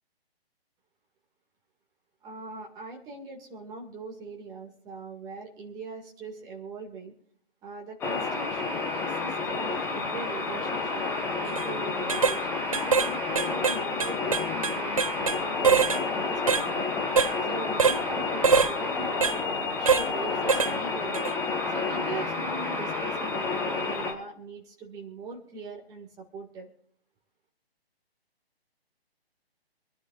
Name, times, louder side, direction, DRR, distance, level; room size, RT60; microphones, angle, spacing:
voice 1, 2.2-7.1 7.6-11.1 11.4-12.5 12.8-17.0 17.5-21.3 21.7-26.7, right 4 dB, 10° right, -1 dB, 2.0 m, -41 dB
sound 1, 8.0-24.1, left 4 dB, 5° left, 1.0 m, -30 dB
sound 2, 11.4-11.6 12.1-12.4 12.7-13.1 13.3-15.4 15.6-16.0 16.5-16.6 17.2-17.3 17.8-18.0 18.4-18.7 19.2-19.3 19.9-20.1 20.5-20.7 21.1-21.3, right 5 dB, 35° right, 0.4 m, -23 dB
26.0 x 11.0 x 2.4 m, 0.64 s
figure-of-eight pair, 140°, 31 cm